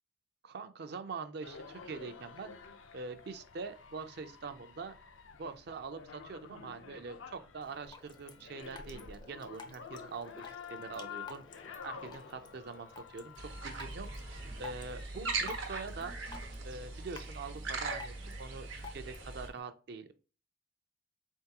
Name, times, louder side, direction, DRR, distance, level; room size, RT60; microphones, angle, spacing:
voice 1, 0.4-2.6 2.9-4.9 5.3-11.5 11.8-14.1 14.6-16.1 16.6-20.1, right 4 dB, 55° right, 10 dB, 0.4 m, -44 dB
sound 1, 1.4-19.4, left 6 dB, 90° left, 0.6 m, -51 dB
Drip, 7.6-19.6, left 3 dB, 25° left, 0.4 m, -53 dB
sound 2, 13.4-19.5, right 3 dB, 90° right, 1.0 m, -40 dB
3.8 x 3.5 x 2.8 m, 0.34 s
head